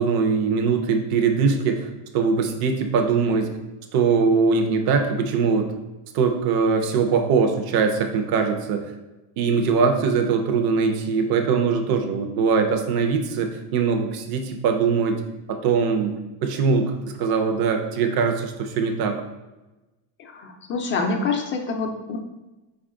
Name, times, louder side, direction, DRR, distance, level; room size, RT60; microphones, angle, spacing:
voice 1, 0.0-3.5 3.9-5.7 6.1-8.8 9.4-15.2 15.5-16.1 16.4-19.2, right 5 dB, 50° right, 5 dB, 0.6 m, -21 dB
voice 2, 20.3-22.2, left 4 dB, 25° left, 3 dB, 0.4 m, -26 dB
4.3 x 2.4 x 3.6 m, 1.0 s
cardioid pair, 140°, 48 cm